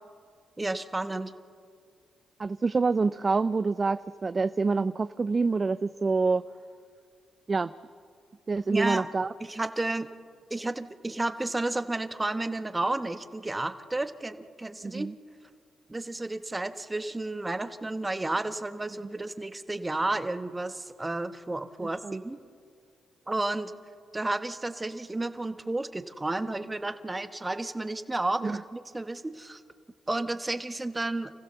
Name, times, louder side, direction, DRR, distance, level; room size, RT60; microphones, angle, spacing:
voice 1, 0.6-1.3 8.7-9.1 9.4-10.1 10.5-15.1 15.9-22.4 23.3-23.7 24.1-29.6 30.1-31.3, right 2 dB, 20° right, 9 dB, 1.3 m, -32 dB
voice 2, 2.4-6.4 7.5-7.7 8.5-9.3 14.8-15.1 22.0-22.2 28.4-28.6, right 4 dB, 40° right, 13 dB, 0.5 m, -26 dB
29.0 x 15.5 x 6.9 m, 2.2 s
supercardioid pair, 60°, 0 cm